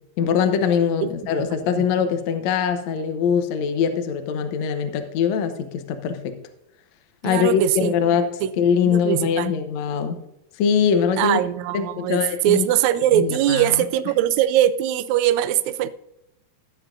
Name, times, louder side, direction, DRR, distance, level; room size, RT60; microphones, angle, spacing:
voice 1, 0.2-6.4 7.2-10.2 10.6-11.4 11.7-12.7 13.1-13.8, left 7 dB, 70° left, 1.8 m, -22 dB
voice 2, 7.2-7.9 8.4-8.5 8.8-9.5 11.2-15.9, right 12 dB, 80° right, 1.7 m, -21 dB
15.0 x 7.3 x 2.5 m
omnidirectional pair, 3.8 m